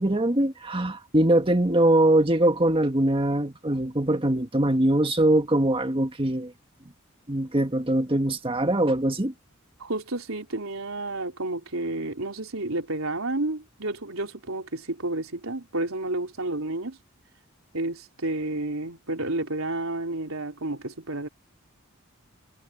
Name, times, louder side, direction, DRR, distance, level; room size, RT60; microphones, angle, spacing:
voice 1, 0.0-6.5 7.3-9.3, right 1 dB, 25° right, 1.8 m, -22 dB
voice 2, 9.8-17.0 17.7-21.3, right 2 dB, 85° right, 3.6 m, -31 dB
head